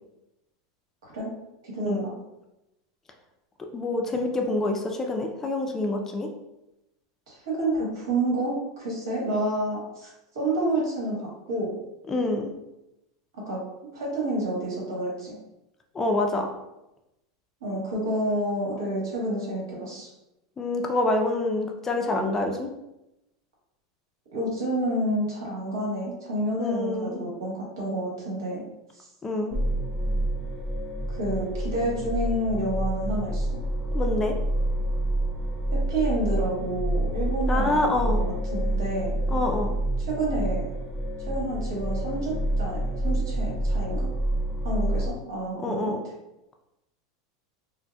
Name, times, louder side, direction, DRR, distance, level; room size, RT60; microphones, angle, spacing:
voice 1, 1.6-2.1 7.3-11.7 13.5-13.6 13.9-15.3 17.6-20.1 24.3-28.6 28.9-29.1 31.1-33.6 35.7-38.2 38.5-39.1 40.0-40.7 41.2-44.1 44.6-45.9, right 1 dB, 90° right, -4 dB, 1.3 m, -29 dB
voice 2, 3.7-6.3 12.1-12.5 15.9-16.5 20.6-22.7 26.6-27.2 29.2-29.6 33.9-34.3 37.5-38.2 39.3-39.7 45.6-46.0, left 2 dB, 20° left, 3 dB, 0.4 m, -26 dB
sound 1, 29.5-45.1, right 1 dB, 5° right, 0.7 m, -28 dB
4.0 x 2.1 x 2.2 m, 0.92 s
supercardioid pair, 125°, 2 cm